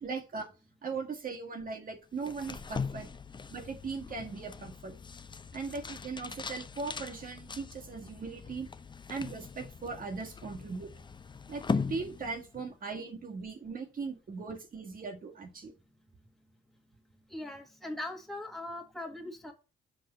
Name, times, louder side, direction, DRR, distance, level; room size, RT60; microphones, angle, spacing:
voice 1, 0.0-0.5 0.8-3.1 3.5-4.9 5.5-8.7 9.1-10.9 11.5-15.7, right 4 dB, 45° right, 3 dB, 1.5 m, -39 dB
sound 1, 2.2-12.7, left 5 dB, 25° left, 0.6 m, -40 dB
voice 2, 17.3-19.5, left 1 dB, ahead, 3 dB, 1.8 m, -40 dB
6.0 x 4.7 x 6.6 m, 0.32 s
cardioid pair, 90°, 20 cm